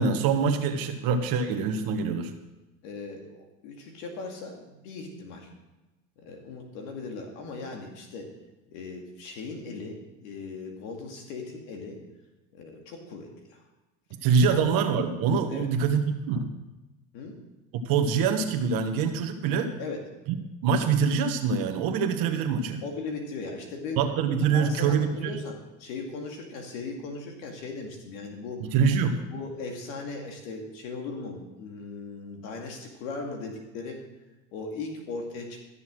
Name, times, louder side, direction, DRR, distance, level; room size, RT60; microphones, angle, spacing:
voice 1, 0.0-2.3 14.2-16.5 17.8-19.7 20.6-22.8 24.0-25.3 28.6-29.2, right 6 dB, 55° right, 6 dB, 1.4 m, -25 dB
voice 2, 2.8-5.5 6.2-8.3 8.7-12.0 12.5-13.6 14.4-14.7 15.5-15.7 17.1-17.4 19.8-20.0 22.8-24.0 24.4-28.6 29.3-34.0 34.5-35.6, left 3 dB, 70° left, 2 dB, 2.3 m, -38 dB
13.5 x 7.0 x 6.2 m, 1.0 s
supercardioid pair, 105°, 41 cm